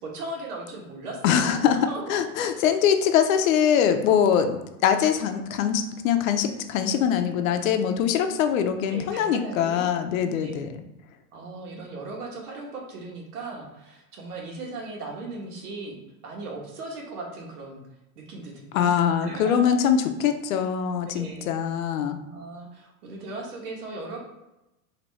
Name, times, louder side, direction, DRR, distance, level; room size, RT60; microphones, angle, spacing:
voice 1, 0.0-2.3 8.9-9.9 10.4-10.6 11.3-17.8 18.1-18.8 19.2-19.7 21.1-21.5 22.3-24.2, right 2 dB, 85° right, 0 dB, 1.6 m, -38 dB
voice 2, 1.2-10.8 18.7-22.2, left 8 dB, 65° left, 7 dB, 0.7 m, -23 dB
4.4 x 2.9 x 4.1 m, 0.94 s
supercardioid pair, 165°, 44 cm